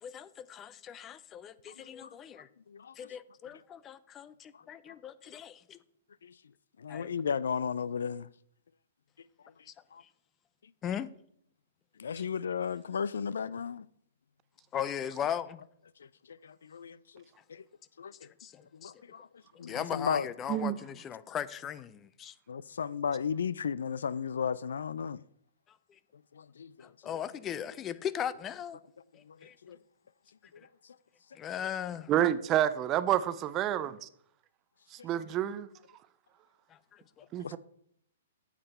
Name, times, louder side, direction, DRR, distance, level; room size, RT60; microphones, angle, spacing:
voice 1, 0.0-2.5 3.0-5.8 6.9-7.1 10.8-11.1 12.2-12.3 14.7-15.6 18.4-18.9 19.7-22.3 26.8-28.8 29.1-29.5 30.6-30.7 31.3-32.1 36.7-37.3, left 9 dB, 25° left, 0.6 m, -38 dB
voice 2, 6.8-8.3 9.9-10.0 12.0-13.8 16.3-17.2 17.5-17.6 18.0-18.1 18.7-19.3 19.6-20.3 22.5-25.2 26.3-27.1 29.3-29.4 29.6-29.8 37.4-37.6, left 6 dB, 70° left, 0.3 m, -34 dB
voice 3, 32.1-34.1 34.9-35.7 37.3-37.6, right 11 dB, 30° right, 0.5 m, -29 dB
8.7 x 7.5 x 4.2 m
figure-of-eight pair, 120°, 0 cm